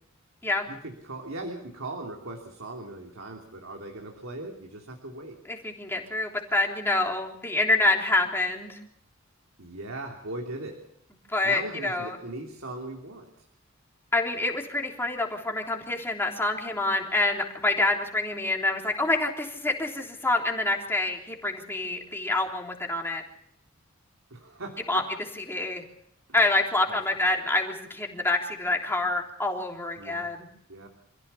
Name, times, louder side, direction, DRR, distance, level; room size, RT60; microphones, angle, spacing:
voice 1, 0.7-5.4 9.6-10.8 11.4-13.4 24.3-25.1 26.9-27.3 30.0-30.3 30.7-30.9, right 2 dB, 85° right, 1 dB, 3.1 m, -39 dB
voice 2, 5.5-8.8 11.3-12.2 14.1-23.2 24.9-25.0 25.5-25.8 26.3-30.5, left 2 dB, 10° left, 0 dB, 3.5 m, -27 dB
27.0 x 15.5 x 7.1 m, 0.74 s
head